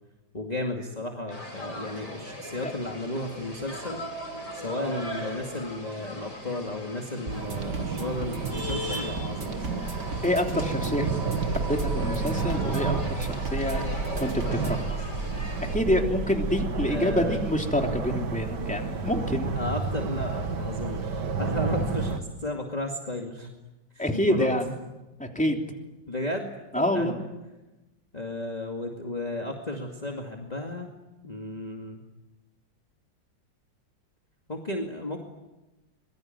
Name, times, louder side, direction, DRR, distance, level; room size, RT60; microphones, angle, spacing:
voice 1, 0.3-4.0 4.5-9.9 16.9-17.4 19.6-23.5 23.9-24.5 26.1-26.5 26.7-27.2 28.1-30.9 31.2-32.0 34.5-35.2, left 2 dB, 20° left, 2 dB, 2.3 m, -33 dB
sound 1, 1.3-15.8, left 1 dB, 80° left, 5.2 m, -39 dB
sound 2, 7.3-14.9, right 2 dB, 40° right, 2.6 m, -38 dB
sound 3, 7.3-22.2, right 4 dB, 65° right, 2.5 m, -30 dB
voice 2, 10.2-11.1 11.7-13.9 14.2-15.0 15.6-19.5 24.0-24.6 25.2-25.6 26.7-27.1, left 1 dB, 5° left, 2 dB, 3.1 m, -27 dB
25.5 x 23.0 x 9.4 m, 1.0 s
omnidirectional pair, 2.0 m